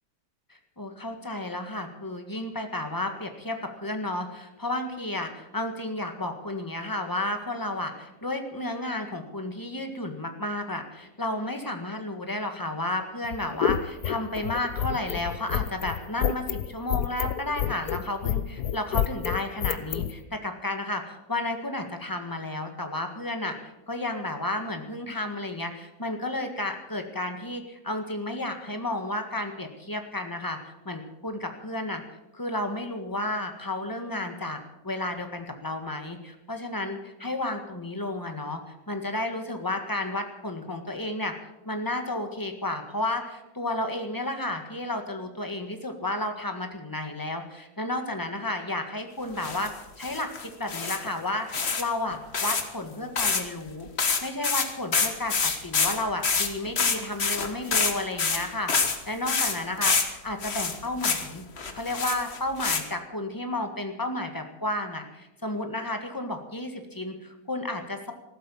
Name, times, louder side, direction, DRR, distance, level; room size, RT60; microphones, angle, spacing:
voice 1, 0.8-32.0 32.3-34.6 34.8-38.6 38.9-41.3 41.6-49.7 50.0-53.9 54.2-61.4 61.7-68.1, left 1 dB, 15° left, 5 dB, 1.6 m, -32 dB
sound 1, 13.2-20.1, left 9 dB, 75° left, 1.3 m, -28 dB
sound 2, 49.4-49.7 50.0-51.1 51.5-51.8 52.1-52.6 53.2-53.4 53.7-53.8 54.0-59.0 59.3-60.1 60.4-61.3 61.6-62.8, left 5 dB, 40° left, 1.6 m, -26 dB
15.0 x 13.0 x 7.3 m, 0.98 s
omnidirectional pair, 1.7 m